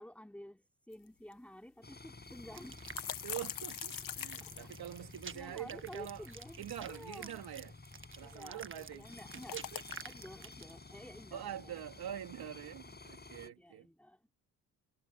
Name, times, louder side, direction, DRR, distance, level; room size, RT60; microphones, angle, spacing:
voice 1, 0.0-2.8 4.4-4.7 5.3-7.4 8.2-9.6 10.0-11.9 13.4-14.3, equal, 5° left, 3.5 m, -52 dB
Jello Squish, 0.9-1.0 1.3-1.4 2.3-5.4 6.4-7.5 8.8-10.2, left 9 dB, 60° left, 1.5 m, -44 dB
sound 1, 1.8-13.5, left 3 dB, 25° left, 6.1 m, -53 dB
sound 2, 2.5-10.8, right 5 dB, 35° right, 1.4 m, -50 dB
voice 2, 3.2-6.2 6.6-7.7 8.2-9.0 9.3-9.8 11.3-13.9, right 11 dB, 75° right, 3.0 m, -45 dB
supercardioid pair, 60°, 38 cm